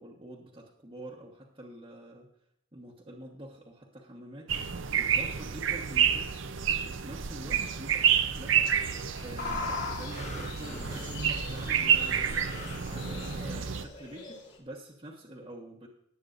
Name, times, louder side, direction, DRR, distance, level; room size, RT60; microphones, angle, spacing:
voice 1, 0.0-2.3 2.7-4.5 4.9-6.5 6.8-8.7 9.2-12.4 12.8-15.9, right 1 dB, 25° right, -5 dB, 1.2 m, -46 dB
sound 1, 4.5-13.9, right 8 dB, 55° right, 0.6 m, -29 dB
sound 2, 8.6-14.6, left 4 dB, 50° left, 3.0 m, -41 dB
sound 3, 10.1-14.1 14.7-14.8, left 1 dB, 30° left, 1.3 m, -45 dB
19.0 x 8.5 x 2.6 m, 0.74 s
head